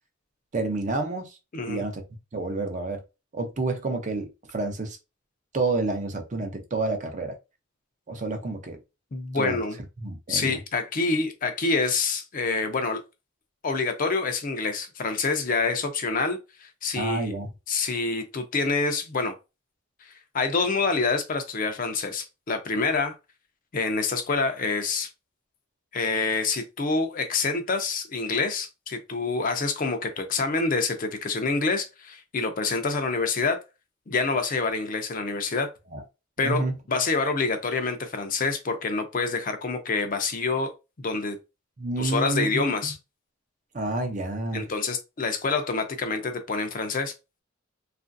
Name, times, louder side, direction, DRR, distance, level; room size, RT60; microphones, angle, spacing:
voice 1, 0.5-1.4 1.7-2.0 2.3-3.0 3.3-5.0 5.5-7.4 8.1-8.8 9.3-9.6 10.0-10.6 17.0-17.5 35.9-36.0 36.4-36.7 41.8-42.6 43.7-44.7, right 2 dB, 40° right, 0.6 m, -29 dB
voice 2, 9.1-9.8 10.3-13.0 13.6-17.3 17.7-19.3 20.0-23.1 23.7-25.1 25.9-33.6 34.1-35.7 36.4-40.7 41.0-41.4 42.0-43.0 44.5-47.1, left 4 dB, 45° left, 0.5 m, -27 dB
2.9 x 2.5 x 2.5 m
head